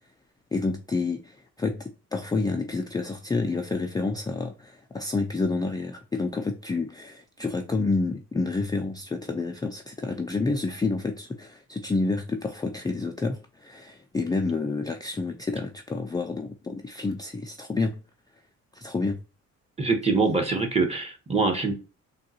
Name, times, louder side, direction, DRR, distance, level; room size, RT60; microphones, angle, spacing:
voice 1, 0.5-18.0 18.7-19.2, left 3 dB, 15° left, 0.4 m, -29 dB
voice 2, 19.8-21.7, right 4 dB, 20° right, 0.9 m, -24 dB
3.6 x 2.3 x 2.6 m
cardioid pair, 90°, 30 cm